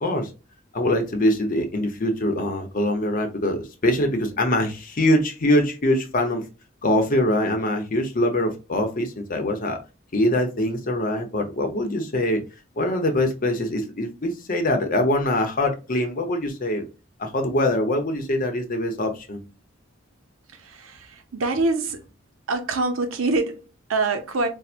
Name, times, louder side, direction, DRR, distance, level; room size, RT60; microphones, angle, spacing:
voice 1, 0.7-6.4 6.8-9.8 10.1-12.4 12.8-16.8 17.2-19.4, left 1 dB, 45° left, 0.7 m, -23 dB
voice 2, 20.5-22.0 22.5-24.5, right 3 dB, 85° right, 0.6 m, -25 dB
4.3 x 2.0 x 2.4 m
head